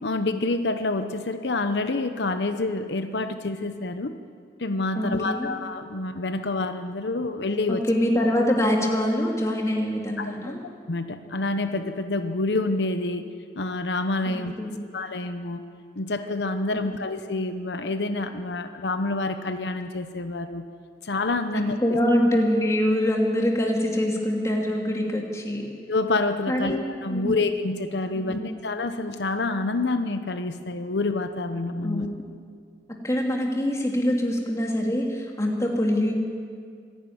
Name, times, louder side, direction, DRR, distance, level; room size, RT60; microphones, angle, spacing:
voice 1, 0.0-4.2 4.6-7.8 10.2-10.5 10.9-14.5 14.9-15.6 16.0-20.7 21.0-21.8 25.9-32.1, left 2 dB, 80° left, 8 dB, 0.9 m, -27 dB
voice 2, 4.9-5.5 7.7-10.6 14.2-14.9 16.8-16.9 21.8-25.7 26.5-26.7 27.1-27.3 28.1-28.6 31.8-32.2 33.0-36.1, left 1 dB, 15° left, 0 dB, 2.7 m, -24 dB
25.5 x 11.0 x 9.5 m, 2.2 s
head